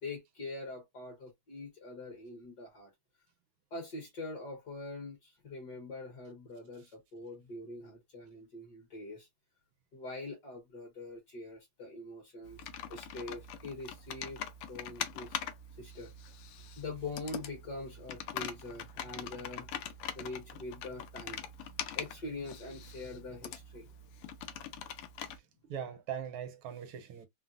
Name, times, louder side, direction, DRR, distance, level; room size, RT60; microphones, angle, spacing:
voice 1, 0.0-2.9 3.7-9.3 9.9-14.4 14.7-15.4 15.8-16.1 16.8-19.7 20.1-23.9, left 2 dB, 55° left, 1.5 m, -44 dB
Computer keyboard, 12.4-25.4, left 8 dB, 85° left, 1.5 m, -43 dB
voice 2, 25.3-27.3, right 8 dB, 80° right, 1.4 m, -41 dB
3.8 x 2.0 x 2.4 m
omnidirectional pair, 2.4 m